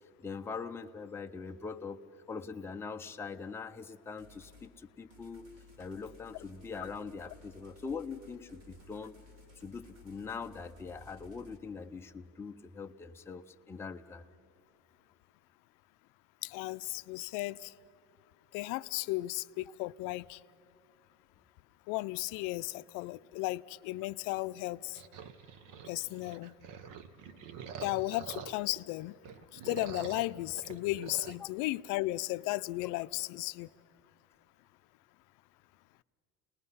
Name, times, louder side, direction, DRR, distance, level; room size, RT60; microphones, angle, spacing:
voice 1, 0.2-5.4 5.8-9.2 9.6-14.2 31.4-31.5, left 5 dB, 5° left, 0.5 m, -42 dB
sound 1, 4.2-4.7 5.1-11.6, equal, 80° right, 4.1 m, -57 dB
voice 2, 16.4-17.7 18.5-20.4 21.9-25.0 25.9-26.5 27.8-29.1 29.5-33.7, left 19 dB, 65° left, 0.5 m, -35 dB
sound 2, 24.9-28.8 29.2-31.4, right 7 dB, 60° right, 1.0 m, -46 dB
28.0 x 19.5 x 5.5 m
cardioid pair, 150°, 34 cm